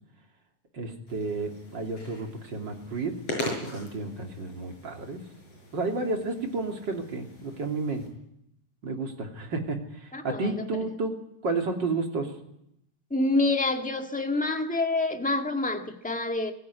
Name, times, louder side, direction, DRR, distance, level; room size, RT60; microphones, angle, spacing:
voice 1, 0.7-3.2 3.6-5.2 5.7-8.0 8.8-11.1 11.4-12.3, right 3 dB, 40° right, 3 dB, 3.3 m, -31 dB
sound 1, 1.1-8.1, left 1 dB, 55° left, 7.6 m, -40 dB
voice 2, 10.1-10.7 13.1-16.5, left 2 dB, 5° left, 5 dB, 1.0 m, -27 dB
23.5 x 15.5 x 9.6 m, 0.78 s
omnidirectional pair, 3.4 m